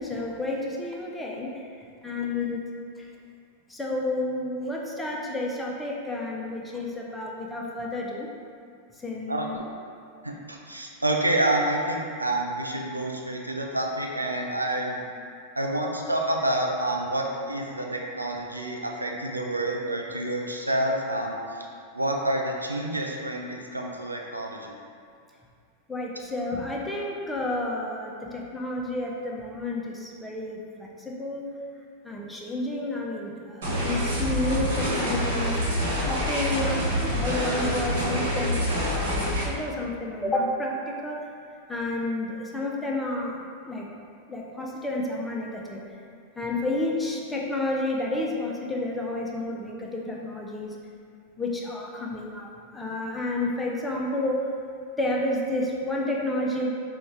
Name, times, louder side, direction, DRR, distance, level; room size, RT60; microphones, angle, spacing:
voice 1, 0.0-1.7 2.0-2.6 3.0-3.1 3.7-8.3 9.0-9.6 25.9-31.5 32.0-35.5 36.1-36.8 37.1-41.3 41.7-43.9 44.3-45.8 46.4-50.8 51.4-54.5 55.0-56.7, left 2 dB, 10° left, -2 dB, 0.5 m, -30 dB
voice 2, 10.2-15.0 15.6-21.4 21.9-24.7, right 1 dB, 85° right, 0 dB, 0.4 m, -28 dB
sound 1, 33.6-39.4, equal, 60° right, 1.2 m, -26 dB
5.2 x 2.3 x 3.2 m, 2.3 s
figure-of-eight pair, 90°, 0 cm